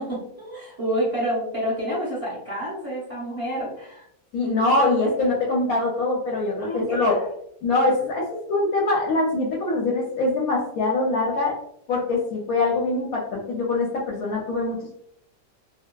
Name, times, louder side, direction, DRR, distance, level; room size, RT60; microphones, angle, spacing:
voice 1, 0.0-4.0 6.6-7.1, equal, 25° right, -7 dB, 1.0 m, -28 dB
voice 2, 4.3-7.1 7.6-11.5 11.9-15.0, left 2 dB, 70° left, -3 dB, 0.9 m, -23 dB
2.7 x 2.2 x 2.2 m, 0.71 s
omnidirectional pair, 1.8 m